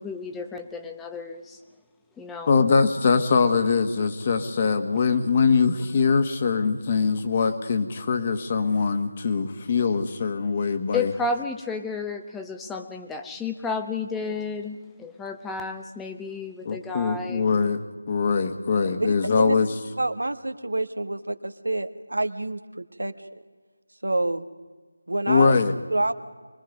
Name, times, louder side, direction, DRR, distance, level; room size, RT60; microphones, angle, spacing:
voice 1, 0.0-1.6 2.2-2.6 10.9-17.5, left 3 dB, 5° left, 5 dB, 0.9 m, -32 dB
voice 2, 2.5-11.1 16.7-17.8 18.1-19.7 25.3-25.7, left 5 dB, 30° left, 7 dB, 1.6 m, -22 dB
voice 3, 19.0-19.5 20.0-23.1 24.0-24.5 25.1-25.5 25.9-26.1, right 2 dB, 80° right, 10 dB, 1.5 m, -27 dB
24.5 x 20.5 x 5.3 m, 1.4 s
figure-of-eight pair, 165°, 0 cm